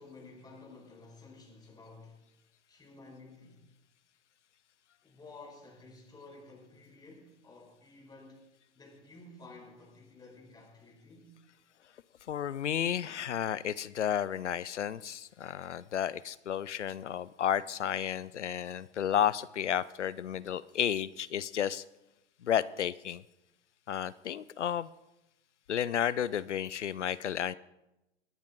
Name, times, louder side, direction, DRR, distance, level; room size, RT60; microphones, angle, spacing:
voice 1, 0.0-2.2 2.7-3.6 5.0-8.5 8.7-11.3, left 3 dB, 10° left, 5.1 m, -53 dB
voice 2, 12.3-21.8 22.4-23.2 23.9-24.9 25.7-27.5, left 9 dB, 80° left, 0.7 m, -32 dB
28.5 x 10.5 x 3.9 m
hypercardioid pair, 110°, 35 cm